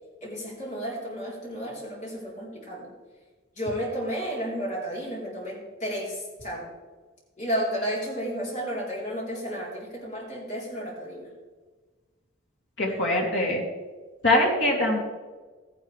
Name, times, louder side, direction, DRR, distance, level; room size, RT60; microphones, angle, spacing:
voice 1, 0.2-2.9 3.6-6.7 7.4-11.3, equal, 40° left, -5 dB, 3.9 m, -32 dB
voice 2, 12.8-13.6 14.2-15.0, left 1 dB, 65° left, -2 dB, 2.9 m, -23 dB
14.5 x 10.0 x 3.4 m, 1.4 s
head